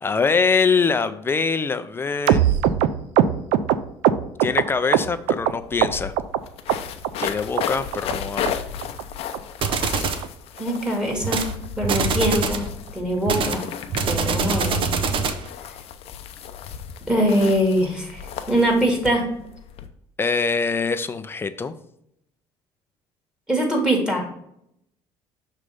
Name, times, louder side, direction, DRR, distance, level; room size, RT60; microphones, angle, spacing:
voice 1, 0.0-2.5 4.4-6.1 7.2-8.6 20.2-21.7, left 5 dB, 20° left, 11 dB, 0.5 m, -23 dB
sound 1, 2.3-5.5 5.8-6.4 6.7-7.3 7.6-7.7 7.9-8.2 8.5-8.6 8.8-9.0 9.3-9.4 9.7-9.9 10.2-10.3 10.6-10.8 11.1-11.2 11.5-11.7 12.0-12.1, right 10 dB, 80° right, 0.4 m, -21 dB
sound 2, 5.1-5.2 5.4-19.9, left 8 dB, 65° left, 0.6 m, -34 dB
sound 3, 9.6-10.3 11.2-11.5 11.8-12.7 13.3-15.5, right 5 dB, 50° right, 0.8 m, -24 dB
voice 2, 10.6-11.4 11.8-12.6 12.9-13.6 14.1-14.8 17.1-18.2 18.5-19.2 23.5-24.2, right 1 dB, 5° right, 0 dB, 2.0 m, -22 dB
6.2 x 3.3 x 5.3 m, 0.75 s
cardioid pair, 105°, 11 cm